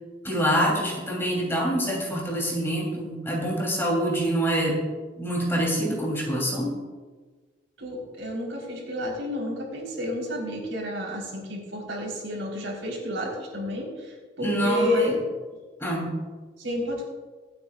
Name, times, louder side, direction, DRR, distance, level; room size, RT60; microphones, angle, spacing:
voice 1, 0.2-4.8 5.2-6.8 14.4-15.1 15.8-16.2, equal, 15° left, -2 dB, 3.1 m, -26 dB
voice 2, 7.8-15.2 16.6-17.0, left 1 dB, 85° right, -1 dB, 3.9 m, -30 dB
24.5 x 8.7 x 2.4 m, 1.4 s
head